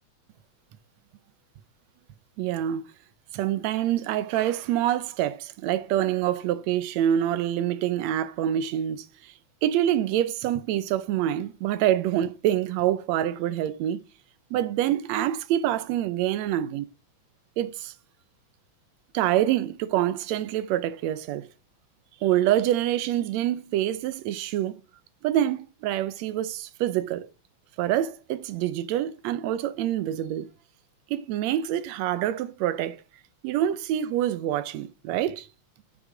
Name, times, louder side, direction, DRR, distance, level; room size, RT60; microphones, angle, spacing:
voice 1, 2.4-2.8 3.3-9.3 9.6-14.0 14.5-16.9 17.6-17.9 19.1-21.4 22.2-24.8 25.2-27.3 27.8-30.5 31.1-33.0 33.4-35.5, right 12 dB, 75° right, 1.9 m, -26 dB
8.0 x 6.2 x 5.0 m
omnidirectional pair, 3.3 m